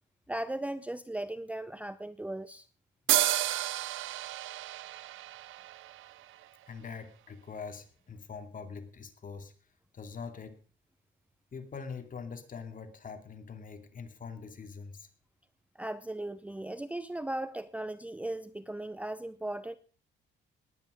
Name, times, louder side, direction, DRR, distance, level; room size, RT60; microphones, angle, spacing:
voice 1, 0.3-2.7 15.7-19.8, right 1 dB, 5° right, 0.6 m, -37 dB
sound 1, 3.1-6.6, right 14 dB, 85° right, 0.8 m, -31 dB
voice 2, 6.7-9.5 9.9-10.6 11.5-15.1, left 5 dB, 45° left, 2.6 m, -43 dB
20.0 x 9.5 x 5.1 m
cardioid pair, 90°, 20 cm